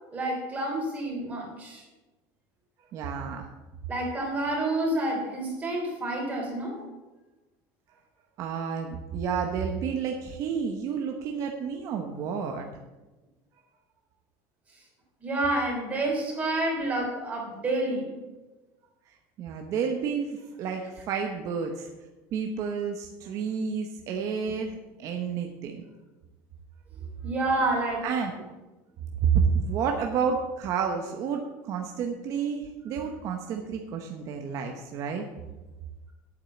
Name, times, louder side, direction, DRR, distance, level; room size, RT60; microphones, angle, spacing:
voice 1, 0.1-1.8 3.9-6.8 15.2-18.1 27.2-28.0, right 2 dB, 20° right, -1 dB, 3.1 m, -29 dB
voice 2, 2.9-3.5 7.9-8.0 8.4-12.7 19.4-21.9 22.3-25.8 28.0-28.3 29.2-35.3, right 6 dB, 40° right, 3 dB, 0.9 m, -30 dB
9.1 x 7.3 x 8.3 m, 1.1 s
cardioid pair, 180°, 9 cm